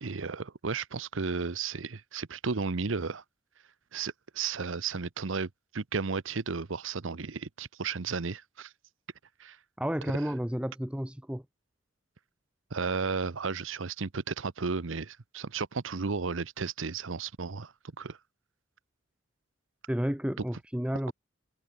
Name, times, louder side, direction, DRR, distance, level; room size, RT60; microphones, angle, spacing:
voice 1, 0.0-3.2 3.9-8.7 9.4-9.6 12.7-18.2, right 4 dB, 80° right, 0.9 m, -34 dB
voice 2, 9.8-11.4 19.9-21.1, equal, 5° right, 0.8 m, -31 dB
head